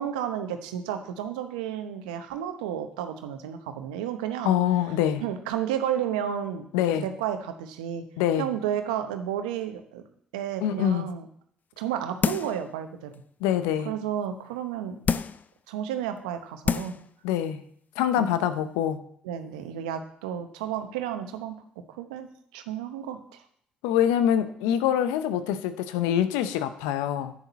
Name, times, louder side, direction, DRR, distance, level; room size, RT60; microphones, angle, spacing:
voice 1, 0.0-4.5 5.2-6.6 7.0-8.0 8.4-10.0 10.3-11.3 11.8-13.1 13.8-15.0 15.7-17.0 18.2-18.3 19.2-21.5 22.0-22.3 22.5-23.4, right 9 dB, 85° right, 8 dB, 0.9 m, -32 dB
voice 2, 4.4-5.2 6.7-7.0 8.2-8.5 10.6-11.1 13.4-13.9 17.2-17.6 18.0-19.0 23.8-27.3, left 10 dB, 80° left, 11 dB, 0.7 m, -25 dB
sound 1, 12.2-12.7 13.1-13.2 15.0-15.5 16.2-16.3 16.6-17.1 17.4-17.5, left 6 dB, 45° left, 0.5 m, -27 dB
10.5 x 8.7 x 4.2 m, 0.65 s
hypercardioid pair, 50°, 4 cm